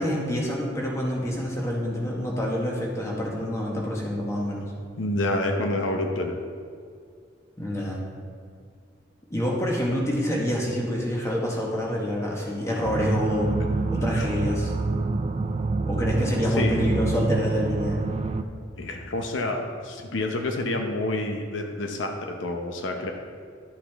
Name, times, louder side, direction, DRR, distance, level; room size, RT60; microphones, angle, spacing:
voice 1, 0.0-4.7 7.6-8.0 9.3-14.7 15.9-18.0, equal, 15° left, -3 dB, 1.3 m, -27 dB
voice 2, 5.0-6.4 13.9-14.3 16.5-16.8 18.8-23.1, left 2 dB, 80° left, 3 dB, 0.8 m, -28 dB
sound 1, 12.8-18.4, right 3 dB, 35° right, 0.4 m, -26 dB
12.0 x 6.1 x 3.5 m, 2.2 s
head